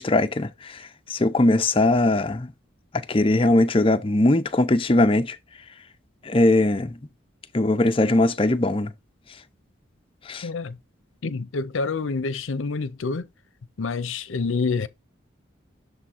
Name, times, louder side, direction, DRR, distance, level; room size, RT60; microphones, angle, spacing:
voice 1, 0.0-2.5 3.1-5.4 6.2-7.0 7.5-8.9 10.3-10.5, left 2 dB, 25° left, 0.5 m, -20 dB
voice 2, 10.4-10.8 11.2-13.3 13.8-14.9, left 4 dB, 75° left, 0.6 m, -27 dB
6.9 x 3.6 x 4.4 m
head